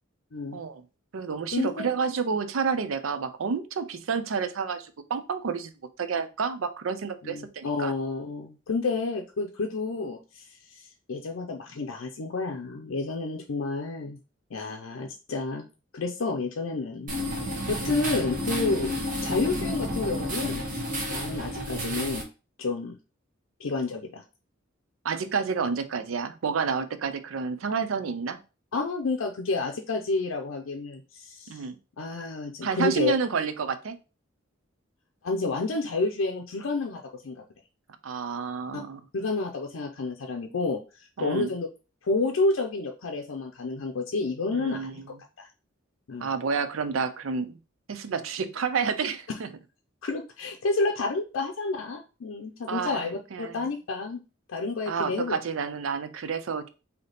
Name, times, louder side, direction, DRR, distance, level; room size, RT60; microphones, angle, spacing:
voice 1, 0.5-0.8 1.1-5.7 6.0-7.9 25.0-28.4 31.5-31.8 32.6-34.0 38.0-39.0 41.2-41.5 44.5-44.9 46.2-47.6 47.9-49.5 52.7-53.6 54.9-56.7, right 5 dB, 85° right, 10 dB, 0.5 m, -29 dB
voice 2, 1.5-1.8 7.2-10.4 10.7-10.8 11.1-14.2 14.5-15.7 15.9-19.0 19.2-20.8 21.1-22.2 22.6-23.0 23.6-24.2 28.7-31.6 32.0-33.1 35.2-37.4 38.7-38.8 39.1-41.7 42.0-45.0 45.4-45.5 46.1-46.3 50.0-54.2 54.5-55.4, left 3 dB, 85° left, 1 dB, 0.5 m, -30 dB
sound 1, 17.1-22.2, left 1 dB, 45° right, 1.1 m, -31 dB
3.4 x 2.8 x 4.0 m, 0.31 s
head